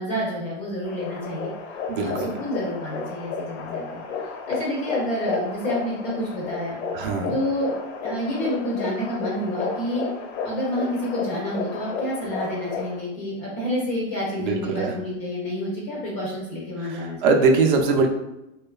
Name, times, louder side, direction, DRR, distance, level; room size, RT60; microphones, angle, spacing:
voice 1, 0.0-1.5 1.9-6.8 7.3-7.7 8.0-10.1 10.4-17.2, equal, 20° left, -3 dB, 0.3 m, -29 dB
sound 1, 0.8-13.0, left 4 dB, 85° left, 0.6 m, -32 dB
voice 2, 1.9-2.3 6.9-7.3 14.4-14.9 16.8-18.1, right 4 dB, 45° right, 2 dB, 0.4 m, -22 dB
3.0 x 2.2 x 2.2 m, 0.91 s
hypercardioid pair, 130°, 38 cm